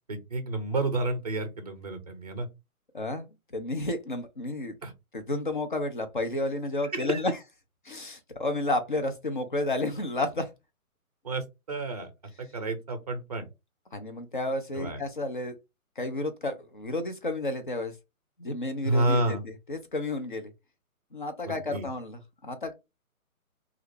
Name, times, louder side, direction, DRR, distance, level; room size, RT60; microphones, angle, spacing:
voice 1, 0.1-2.5 4.8-4.9 6.9-7.2 11.2-12.1 12.4-13.5 14.7-15.0 18.8-19.4 21.5-21.9, right 2 dB, 30° right, 0.5 m, -30 dB
voice 2, 2.9-4.8 5.1-7.4 7.8-10.5 13.9-15.5 16.0-17.9 18.4-20.5 21.1-22.7, left 2 dB, 35° left, 0.5 m, -31 dB
3.1 x 2.4 x 3.0 m
hypercardioid pair, 165°, 43 cm